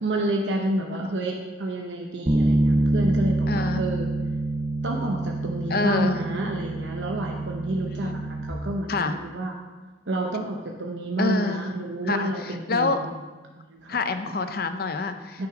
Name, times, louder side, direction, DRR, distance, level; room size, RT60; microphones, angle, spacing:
voice 1, 0.0-4.1 4.8-9.5 10.1-13.1 13.6-14.0 14.3-14.4 15.4-15.5, right 1 dB, 80° right, 1 dB, 0.8 m, -29 dB
Bass guitar, 2.3-8.5, right 2 dB, 20° right, 0.5 m, -26 dB
voice 2, 3.5-3.8 5.7-6.2 8.0-8.2 8.9-9.1 11.2-11.7 12.1-13.0 13.9-15.4, left 3 dB, 55° left, 9 dB, 0.6 m, -26 dB
8.8 x 6.1 x 4.9 m, 1.3 s
head